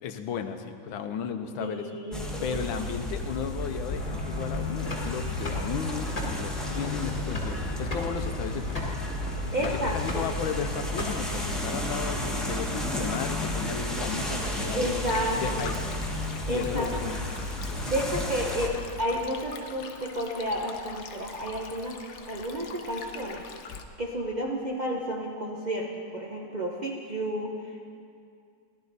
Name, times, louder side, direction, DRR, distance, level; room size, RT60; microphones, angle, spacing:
voice 1, 0.0-1.9 2.4-8.8 9.6-15.1 15.4-15.7 16.5-17.2, left 7 dB, 80° left, 8 dB, 1.5 m, -34 dB
voice 2, 1.6-2.6 9.5-10.3 14.7-15.7 16.5-16.9 17.9-22.0 22.3-23.4 24.0-27.8, equal, 75° right, -2 dB, 0.4 m, -31 dB
sound 1, 2.1-18.7, left 1 dB, ahead, 1.0 m, -32 dB
sound 2, 3.9-11.5, left 2 dB, 20° left, 1.3 m, -36 dB
Stream, 15.0-23.8, left 5 dB, 65° left, 0.7 m, -44 dB
17.0 x 11.5 x 4.0 m, 2.4 s
omnidirectional pair, 2.2 m